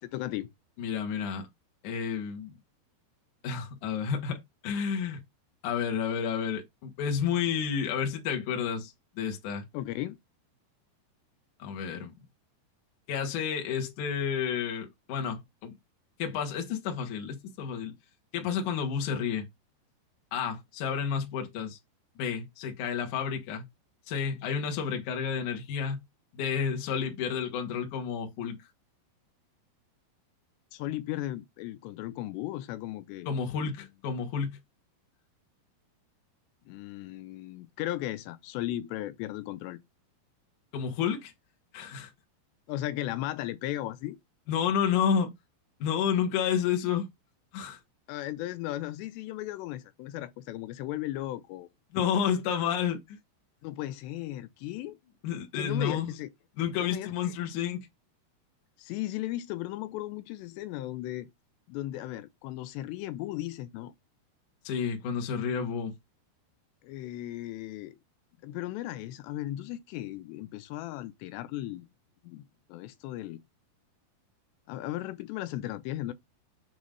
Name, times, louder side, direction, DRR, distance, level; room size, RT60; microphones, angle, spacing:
voice 1, 0.1-0.5 9.7-10.2 30.7-33.3 33.6-33.9 36.7-39.8 42.7-44.2 48.1-51.7 53.6-55.0 55.5-56.3 56.8-57.3 58.8-61.3 61.7-63.9 66.8-68.0 68.4-71.9 72.2-72.4 72.7-73.4 74.7-76.1, left 15 dB, 85° left, 2.8 m, -36 dB
voice 2, 0.8-1.5 1.8-2.6 3.4-5.2 5.6-9.6 11.6-12.1 13.1-15.7 16.2-17.9 18.3-19.4 20.3-21.8 22.2-23.7 24.1-26.0 26.3-28.6 33.3-34.6 40.7-41.3 41.7-42.1 44.5-45.3 45.8-47.1 47.5-47.8 51.9-53.2 55.2-56.2 56.6-57.9 64.6-65.9, left 7 dB, 60° left, 2.4 m, -30 dB
7.5 x 3.1 x 5.3 m
omnidirectional pair, 4.9 m